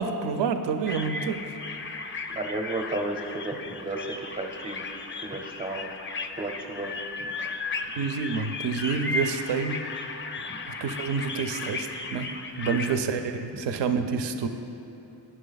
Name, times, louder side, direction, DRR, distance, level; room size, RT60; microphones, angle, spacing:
voice 1, 0.0-1.4 8.0-9.8 10.8-12.3 12.6-14.5, right 5 dB, 75° right, 8 dB, 0.6 m, -28 dB
sound 1, 0.9-13.0, left 3 dB, 30° left, 0.4 m, -35 dB
voice 2, 2.3-4.8 5.2-5.9 6.3-7.0 7.4-7.5 12.7-13.0 13.5-13.6, right 2 dB, 20° right, 1 dB, 0.6 m, -33 dB
9.1 x 6.1 x 3.9 m, 2.8 s
wide cardioid pair, 90°, 43 cm